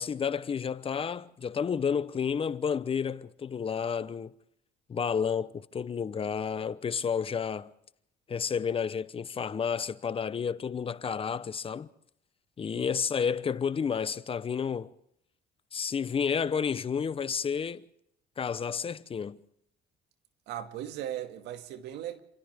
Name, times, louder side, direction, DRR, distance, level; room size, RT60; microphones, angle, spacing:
voice 1, 0.0-4.3 4.9-7.7 8.3-11.9 12.6-14.9 15.7-17.8 18.4-19.4, left 6 dB, 35° left, 0.9 m, -31 dB
voice 2, 20.5-22.2, right 11 dB, 85° right, 2.3 m, -38 dB
29.0 x 27.0 x 3.7 m
cardioid pair, 110°, 17 cm